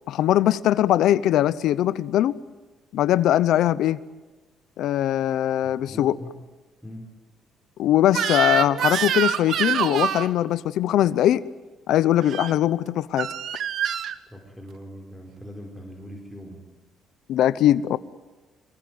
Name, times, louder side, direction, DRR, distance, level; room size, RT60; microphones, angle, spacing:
voice 1, 0.1-2.3 2.9-4.0 4.8-6.1 7.8-11.4 11.9-13.3 17.3-18.0, left 12 dB, 75° left, 16 dB, 0.8 m, -21 dB
voice 2, 5.6-6.3 6.8-7.1 14.3-16.6, equal, 5° right, 0 dB, 4.8 m, -41 dB
Crying sobbing / Screech, 8.1-10.3 12.2-12.5 13.2-14.2, right 9 dB, 60° right, 1.6 m, -25 dB
26.5 x 22.5 x 9.5 m, 1.2 s
cardioid pair, 120°, 0 cm